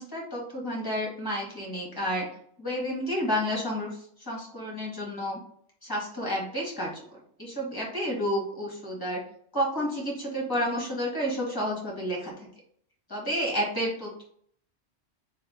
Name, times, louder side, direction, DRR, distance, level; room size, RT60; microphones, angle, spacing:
voice 1, 0.0-2.3 2.6-3.9 4.2-5.4 5.8-9.2 9.5-12.3 13.1-14.2, equal, 20° left, -3 dB, 1.5 m, -30 dB
3.5 x 3.2 x 3.7 m, 0.63 s
omnidirectional pair, 1.2 m